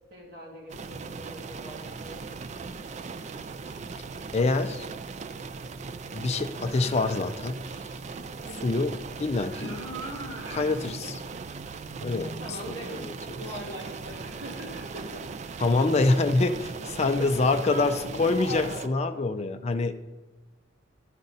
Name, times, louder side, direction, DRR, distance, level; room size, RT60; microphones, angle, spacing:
voice 1, 0.1-2.2 8.4-8.8 12.2-13.1 13.4-15.2 17.0-19.2, equal, 55° right, -3 dB, 2.1 m, -41 dB
sound 1, 0.7-18.9, right 4 dB, 35° right, 0.4 m, -39 dB
voice 2, 4.3-4.9 6.1-7.6 8.6-9.8 10.5-11.2 12.0-12.3 12.7-13.1 15.6-20.1, left 3 dB, 35° left, 7 dB, 0.4 m, -26 dB
sound 2, 6.6-7.7 9.1-11.0 11.5-11.6 13.5-16.0, right 1 dB, 85° right, 1.6 m, -44 dB
13.0 x 5.2 x 4.0 m, 1.3 s
head